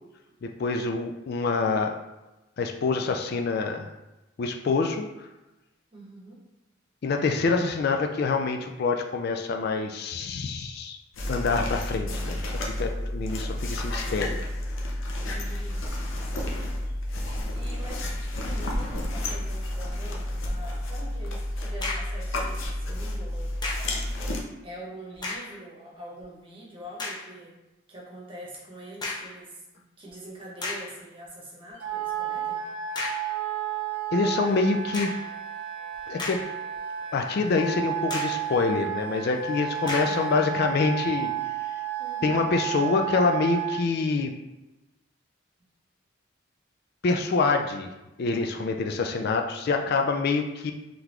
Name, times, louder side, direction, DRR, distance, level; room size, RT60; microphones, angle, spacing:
voice 1, 0.4-1.9 2.6-3.9 4.4-5.3 7.0-11.0 11.3-14.4 34.1-35.1 36.1-36.4 37.1-41.3 42.2-44.3 47.0-47.9 48.2-50.7, left 4 dB, 50° left, 4 dB, 0.3 m, -26 dB
voice 2, 5.9-6.4 15.2-15.9 17.5-23.5 24.6-27.6 27.9-32.6 39.8-40.3 42.0-42.5 49.0-49.5, right 1 dB, 25° right, -4 dB, 1.0 m, -44 dB
sound 1, 11.1-24.4, left 1 dB, 75° left, 0.7 m, -31 dB
sound 2, 21.8-22.2 23.6-24.0 25.1-25.6 26.2-26.3 27.0-27.3 29.0-29.4 30.1-30.2 30.6-31.0 32.9-33.3 34.9-35.3 35.9-36.8 37.1-37.2 38.1-38.5 39.9-40.3, left 3 dB, 20° left, 0.6 m, -34 dB
Wind instrument woodwind instrument, 31.8-43.8, right 9 dB, 65° right, 0.6 m, -32 dB
3.9 x 3.3 x 3.0 m, 1.0 s
head